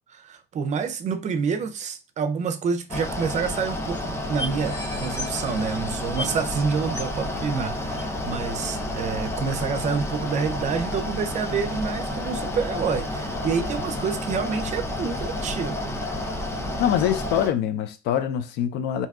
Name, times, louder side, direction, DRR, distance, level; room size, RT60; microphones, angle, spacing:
voice 1, 0.1-16.0, right 6 dB, 45° right, 0.5 m, -28 dB
Mechanical fan, 2.9-17.5, left 1 dB, 15° left, 0.5 m, -30 dB
sound 1, 4.4-6.6 6.9-7.2 8.0-8.1, left 1 dB, 40° left, 1.1 m, -36 dB
voice 2, 16.8-19.1, left 10 dB, 90° left, 0.4 m, -24 dB
2.7 x 2.2 x 3.5 m
cardioid pair, 110°, 17 cm